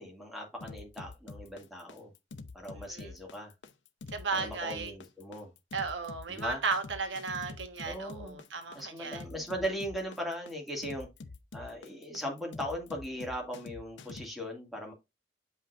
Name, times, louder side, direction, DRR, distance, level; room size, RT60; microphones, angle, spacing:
voice 1, 0.0-2.1 2.5-3.5 4.3-5.5 6.3-6.6 7.8-8.4 8.7-11.1 11.5-14.9, equal, ahead, 2.1 m, -38 dB
sound 1, 0.6-14.3, left 3 dB, 85° left, 0.7 m, -46 dB
voice 2, 2.7-3.1 4.1-4.9 5.7-9.2, right 4 dB, 85° right, 1.4 m, -35 dB
7.4 x 5.5 x 2.5 m
head